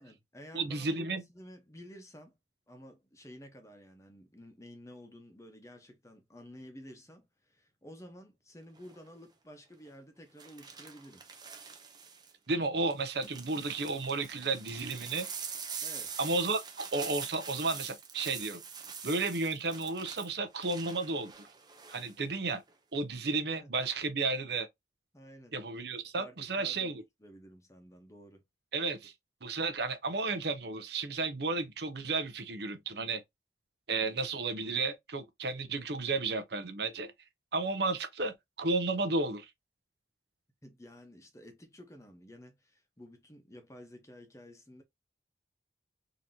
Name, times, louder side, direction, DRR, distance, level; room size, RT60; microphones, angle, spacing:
voice 1, 0.0-2.4 2.7-11.2 15.8-16.1 23.2-23.7 25.1-25.6 26.2-28.4 40.6-44.8, equal, 15° left, 0.8 m, -52 dB
voice 2, 0.5-1.2 12.5-15.3 16.2-18.6 19.0-21.5 21.9-22.6 22.9-24.7 25.5-27.0 28.7-29.1 29.4-33.2 33.9-37.1 37.5-39.5, right 3 dB, 65° right, 0.7 m, -33 dB
sound 1, 8.8-9.1 10.4-12.3 12.9-22.1 22.5-23.0, right 6 dB, 25° right, 0.6 m, -44 dB
3.9 x 2.8 x 2.6 m
head